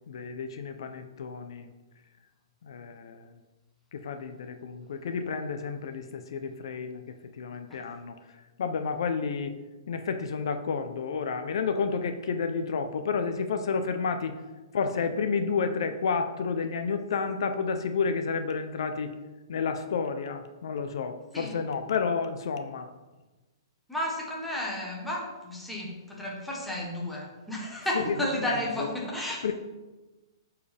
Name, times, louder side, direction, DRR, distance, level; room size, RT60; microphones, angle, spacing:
voice 1, 0.1-1.7 2.6-3.3 3.9-8.2 8.6-9.6 9.9-14.3 14.7-19.1 19.5-22.9 27.9-28.2 28.4-28.9 29.4-29.5, left 5 dB, 65° left, 8 dB, 0.7 m, -31 dB
voice 2, 23.9-29.5, left 1 dB, 5° left, -3 dB, 1.3 m, -33 dB
11.5 x 4.7 x 3.5 m, 1.1 s
hypercardioid pair, 165°, 3 cm